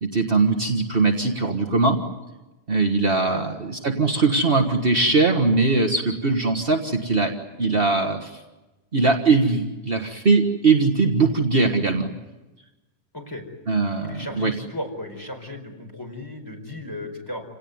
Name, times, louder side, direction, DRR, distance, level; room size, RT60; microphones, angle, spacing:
voice 1, 0.0-2.0 2.7-7.3 7.6-8.4 8.9-12.1 13.7-14.5, right 3 dB, 45° right, 2 dB, 1.8 m, -21 dB
voice 2, 3.1-3.4 13.1-13.4 13.8-17.4, left 1 dB, 15° left, 3 dB, 4.6 m, -35 dB
28.5 x 18.0 x 9.6 m, 1.1 s
omnidirectional pair, 1.4 m